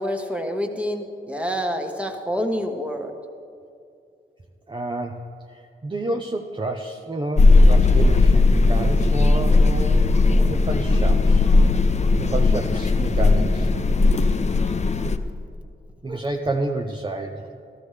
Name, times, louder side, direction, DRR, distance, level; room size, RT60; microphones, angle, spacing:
voice 1, 0.0-3.1, equal, 5° right, 3 dB, 1.3 m, -27 dB
voice 2, 4.7-5.2 5.5-11.5 12.2-13.7 14.9-15.1 16.0-17.5, right 2 dB, 25° right, 3 dB, 0.7 m, -30 dB
sound 1, 7.4-15.2, left 3 dB, 35° left, 0.6 m, -17 dB
13.5 x 13.5 x 3.3 m, 2.4 s
cardioid pair, 60°, 21 cm